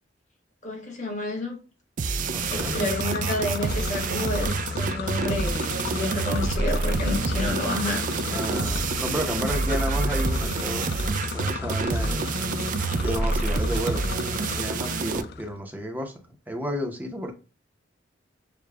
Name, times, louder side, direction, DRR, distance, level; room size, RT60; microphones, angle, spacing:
voice 1, 0.6-1.5 2.5-8.7, left 1 dB, 40° left, 1.4 m, -30 dB
sound 1, 2.0-15.2, right 4 dB, 45° right, 0.3 m, -27 dB
sound 2, 2.1-15.5, left 4 dB, 60° left, 0.4 m, -33 dB
voice 2, 2.2-2.8 8.3-11.0 11.3-12.3 13.0-17.3, equal, 10° right, 0.8 m, -32 dB
6.7 x 2.3 x 2.3 m
head